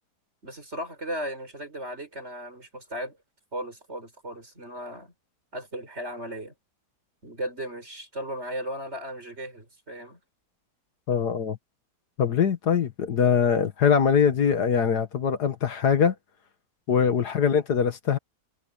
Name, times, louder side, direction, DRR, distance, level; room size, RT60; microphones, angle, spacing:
voice 1, 0.4-3.2 3.5-5.1 5.5-6.5 7.2-10.2 17.0-17.1, equal, 40° right, 6.8 m, -36 dB
voice 2, 11.1-11.6 12.2-16.1 16.9-18.2, left 7 dB, 70° left, 2.0 m, -22 dB
omnidirectional pair, 1.8 m